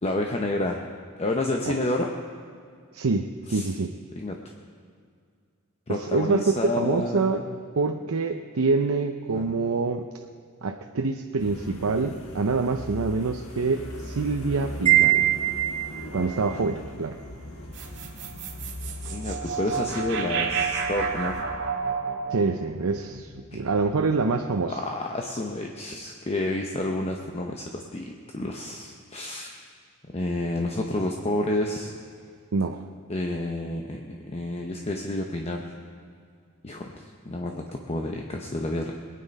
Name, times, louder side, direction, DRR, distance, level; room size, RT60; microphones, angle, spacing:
voice 1, 0.0-0.8 1.2-2.1 3.5-3.7 4.2-4.4 5.9-7.5 9.3-9.6 19.1-21.4 23.5-23.6 24.7-29.6 30.1-31.9 33.1-35.7 36.6-38.9, left 1 dB, 30° left, 2 dB, 0.8 m, -29 dB
voice 2, 2.9-3.9 5.9-7.4 7.8-10.0 10.6-15.3 16.1-17.2 22.3-24.7 32.5-32.8, right 4 dB, 85° right, 4 dB, 0.7 m, -26 dB
sound 1, 11.4-21.4, left 1 dB, 80° left, 1.9 m, -40 dB
Wind chime, 14.9-16.2, right 15 dB, 30° right, 2.0 m, -21 dB
sound 2, 17.7-24.1, right 5 dB, 60° right, 1.7 m, -31 dB
21.5 x 9.5 x 5.3 m, 2.2 s
head